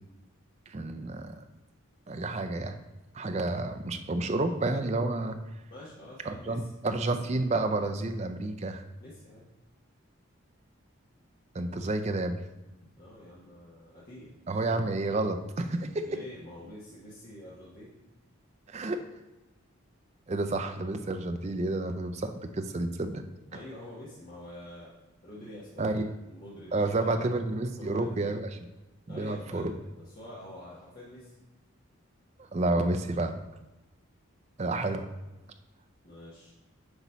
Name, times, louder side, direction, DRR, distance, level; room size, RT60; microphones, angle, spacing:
voice 1, 0.7-1.4 2.1-2.8 3.1-5.4 6.3-8.8 11.5-12.4 14.5-16.2 18.7-19.1 20.3-23.2 25.8-26.1 26.7-28.6 29.1-29.7 32.4-33.4 34.6-35.1, right 2 dB, 30° right, 8 dB, 0.4 m, -30 dB
voice 2, 5.7-6.6 9.0-9.4 13.0-14.3 16.0-18.0 23.5-24.9 25.2-27.2 27.8-28.3 29.1-29.7 30.0-31.4 36.0-36.5, left 1 dB, 40° left, -7 dB, 1.2 m, -46 dB
8.0 x 3.0 x 5.6 m, 1.0 s
head